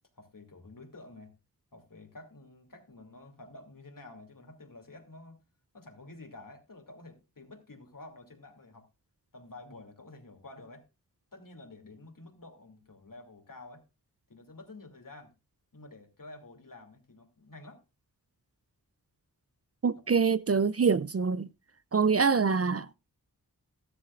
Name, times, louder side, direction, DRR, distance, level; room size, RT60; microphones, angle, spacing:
voice 1, 0.2-1.3 1.7-5.4 5.7-8.9 9.3-10.8 11.3-13.8 14.3-15.3 15.7-17.8, left 2 dB, 60° left, 2.8 m, -50 dB
voice 2, 19.8-21.5 21.9-22.9, right 5 dB, 40° right, 0.5 m, -25 dB
13.0 x 13.0 x 2.5 m
cardioid pair, 45°, 37 cm